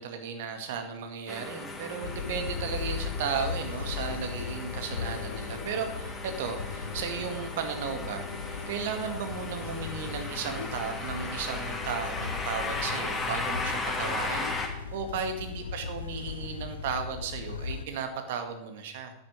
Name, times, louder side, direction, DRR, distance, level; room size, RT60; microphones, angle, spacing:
voice 1, 0.0-8.3 8.7-19.1, right 6 dB, 55° right, 6 dB, 2.1 m, -35 dB
sound 1, 1.3-14.7, left 3 dB, 15° left, 2.6 m, -37 dB
sound 2, 2.0-17.9, left 6 dB, 70° left, 0.8 m, -38 dB
9.7 x 9.0 x 8.7 m, 0.93 s
figure-of-eight pair, 90°, 0 cm